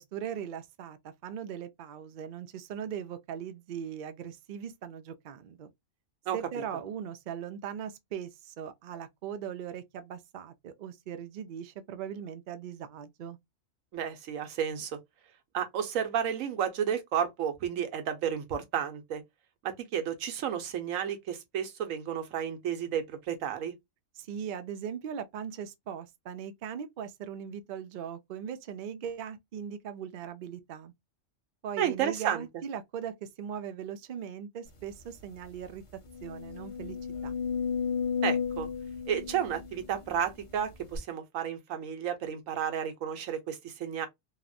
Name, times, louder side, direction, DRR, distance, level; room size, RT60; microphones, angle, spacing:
voice 1, 0.0-5.7 6.3-13.4 24.2-30.9 31.6-35.8 36.2-37.0 37.2-37.4, right 8 dB, 70° right, 0.4 m, -39 dB
voice 2, 13.9-14.9 15.5-19.2 19.6-23.7 31.8-32.4 38.2-38.7 39.1-44.1, right 8 dB, 90° right, 1.1 m, -32 dB
sound 1, 34.9-35.0 35.4-35.5 36.0-40.3 40.9-41.0, left 6 dB, 30° left, 0.6 m, -33 dB
2.9 x 2.0 x 2.4 m
omnidirectional pair, 1.3 m